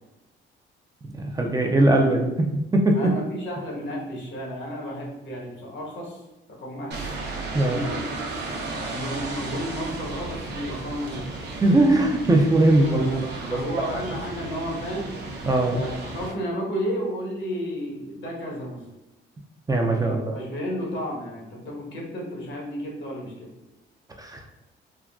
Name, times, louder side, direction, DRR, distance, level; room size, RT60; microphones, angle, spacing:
voice 1, 1.1-2.5 2.7-3.1 7.5-7.8 11.6-13.0 13.4-14.0 15.5-15.8 19.7-20.4 24.2-24.5, right 1 dB, 20° right, 1 dB, 0.4 m, -20 dB
voice 2, 2.9-6.2 6.6-7.0 7.6-8.0 8.9-11.3 12.9-15.1 15.7-18.8 20.0-23.5, equal, 65° left, -3 dB, 1.2 m, -32 dB
sound 1, 6.9-16.3, right 3 dB, 60° right, 0.6 m, -34 dB
3.6 x 2.2 x 2.3 m, 1.0 s
cardioid pair, 90°, 20 cm